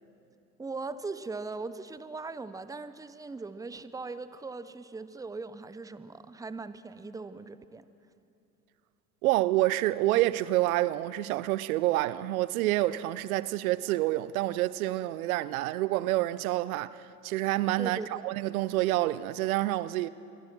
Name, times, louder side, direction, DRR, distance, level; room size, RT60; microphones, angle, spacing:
voice 1, 0.6-7.8 17.8-18.2, right 3 dB, 10° right, 0.8 m, -39 dB
voice 2, 9.2-20.1, right 16 dB, 70° right, 0.7 m, -28 dB
26.5 x 22.0 x 6.1 m
hypercardioid pair, 80°, 44 cm